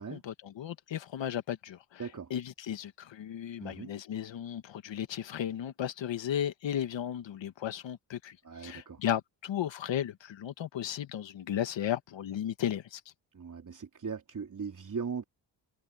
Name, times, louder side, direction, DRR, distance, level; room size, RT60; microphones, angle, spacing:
voice 1, 0.0-2.0 2.3-13.0, left 10 dB, 70° left, 1.8 m, -35 dB
voice 2, 2.0-2.3 3.6-3.9 8.4-9.0 13.3-15.2, right 6 dB, 40° right, 3.1 m, -39 dB
cardioid pair, 90°, 46 cm